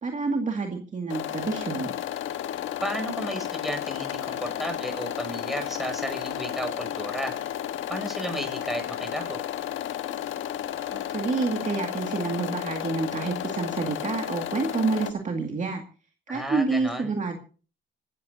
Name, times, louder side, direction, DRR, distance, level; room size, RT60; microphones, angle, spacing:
voice 1, 0.0-1.9 10.9-15.8 16.3-17.4, right 4 dB, 40° right, 3 dB, 2.2 m, -28 dB
sound 1, 1.1-15.1, left 11 dB, 80° left, 1.3 m, -33 dB
voice 2, 2.8-7.4 7.9-9.4 16.3-17.1, equal, ahead, 4 dB, 6.4 m, -33 dB
26.5 x 13.5 x 2.7 m, 0.38 s
cardioid pair, 90°, 20 cm